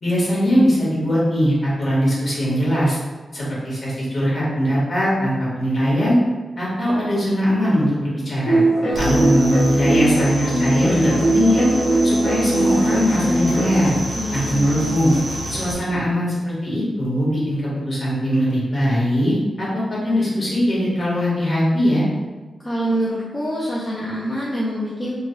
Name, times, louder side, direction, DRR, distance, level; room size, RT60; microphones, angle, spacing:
voice 1, 0.0-3.0 3.3-6.1 6.6-8.6 9.0-11.7 12.0-14.0 14.3-15.1 15.5-17.6 17.9-19.3 19.6-22.0, equal, 40° left, -7 dB, 1.4 m, -20 dB
sound 1, 8.5-13.9, right 1 dB, 65° left, 1.4 m, -20 dB
voice 2, 8.8-9.3 14.2-14.8 22.6-25.2, equal, 15° left, -7 dB, 0.5 m, -26 dB
sound 2, 8.9-15.7, equal, 40° right, 0.7 m, -29 dB
3.2 x 2.3 x 3.8 m, 1.3 s
wide cardioid pair, 155°, 0 cm